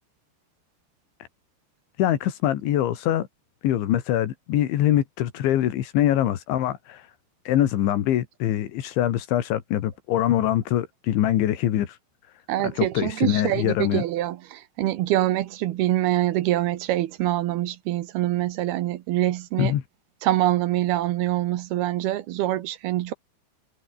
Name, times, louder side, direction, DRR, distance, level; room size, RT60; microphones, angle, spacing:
voice 1, 2.0-3.3 3.6-7.1 7.5-12.0 12.6-14.0 19.6-19.8, left 12 dB, 90° left, 4.3 m, -23 dB
voice 2, 12.5-19.7 20.2-23.1, right 14 dB, 70° right, 2.7 m, -25 dB
omnidirectional pair, 5.2 m